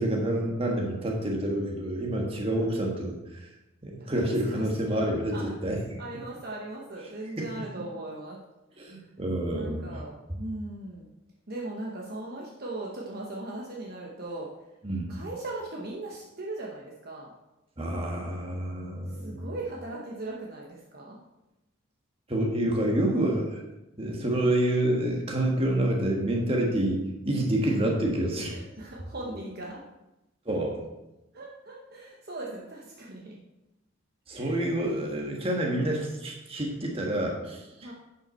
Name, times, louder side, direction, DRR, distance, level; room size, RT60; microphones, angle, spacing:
voice 1, 0.0-3.2 3.8-5.8 7.4-7.5 8.8-9.9 14.8-15.1 17.8-19.4 22.3-23.6 24.0-28.5 30.4-30.8 34.3-37.6, right 1 dB, 25° right, 0 dB, 1.5 m, -28 dB
voice 2, 4.0-5.6 6.0-8.4 8.7-8.9 9.5-11.1 11.5-14.5 15.1-17.3 19.1-21.2 27.6-27.8 28.5-29.8 31.3-33.4 34.3-34.7 37.8-37.9, right 2 dB, 45° right, -3 dB, 1.1 m, -39 dB
10.5 x 5.7 x 4.4 m, 0.96 s
head